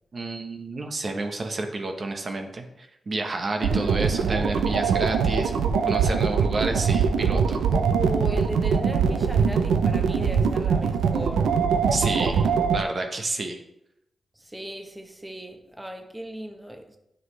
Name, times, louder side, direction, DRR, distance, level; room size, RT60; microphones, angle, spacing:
voice 1, 0.1-5.5 5.8-7.6 11.9-13.6, right 2 dB, 55° right, 1.1 m, -30 dB
voice 2, 3.6-4.7 7.7-11.6 14.4-17.0, equal, 10° right, 1.1 m, -36 dB
sound 1, 3.6-12.8, right 6 dB, 90° right, 0.5 m, -22 dB
9.3 x 5.6 x 3.3 m
cardioid pair, 45°, 0 cm